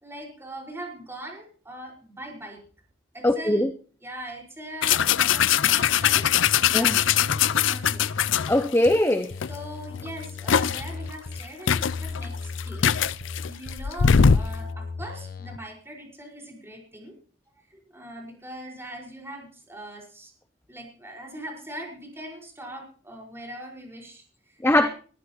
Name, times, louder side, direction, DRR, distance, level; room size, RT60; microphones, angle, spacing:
voice 1, 0.0-2.6 3.1-3.7 4.0-6.3 6.5-8.1 9.5-13.0 13.4-17.2 17.7-20.3 20.7-24.9, right 1 dB, 15° right, 5.4 m, -41 dB
voice 2, 3.2-3.7 6.7-7.0 8.5-9.3 24.6-24.9, left 1 dB, 10° left, 0.7 m, -21 dB
sound 1, 4.8-8.9 9.4-9.6 9.9-10.9 11.4-11.5 11.7-14.6, left 8 dB, 80° left, 0.5 m, -21 dB
sound 2, 6.0-6.6 6.9-8.9 9.3-11.4 11.7-13.7 14.1-15.6, left 4 dB, 50° left, 1.0 m, -36 dB
20.5 x 14.0 x 3.1 m
head